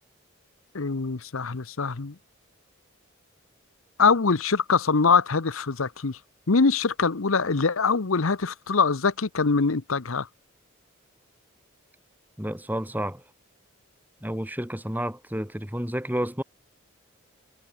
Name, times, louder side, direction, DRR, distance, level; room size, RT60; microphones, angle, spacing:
voice 1, 0.7-2.1 4.0-6.2 6.5-10.3, left 4 dB, 80° left, 0.9 m, -23 dB
voice 2, 12.4-13.2 14.2-16.4, equal, 10° right, 3.1 m, -30 dB
head